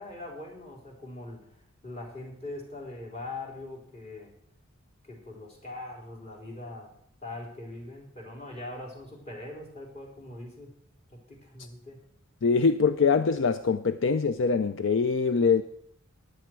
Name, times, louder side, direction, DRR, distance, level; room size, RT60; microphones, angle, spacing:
voice 1, 0.0-1.4 1.8-4.3 5.0-6.9 7.2-10.7 11.1-12.0, left 2 dB, 30° left, -2 dB, 4.0 m, -41 dB
voice 2, 12.4-15.6, left 5 dB, 60° left, 11 dB, 0.5 m, -23 dB
16.0 x 10.5 x 4.6 m, 0.67 s
head